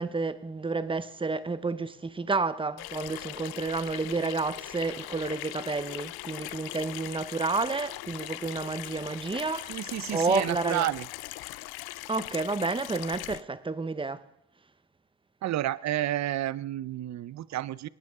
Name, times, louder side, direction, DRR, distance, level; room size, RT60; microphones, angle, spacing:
voice 1, 0.0-10.9 12.1-14.2, right 3 dB, 15° right, 0.8 m, -30 dB
Water tap faucet / Sink (filling or washing), 2.8-13.4, left 19 dB, 75° left, 0.5 m, -40 dB
voice 2, 9.7-11.1 15.4-17.9, right 13 dB, 50° right, 0.6 m, -30 dB
25.5 x 9.9 x 3.6 m
cardioid pair, 85°, 37 cm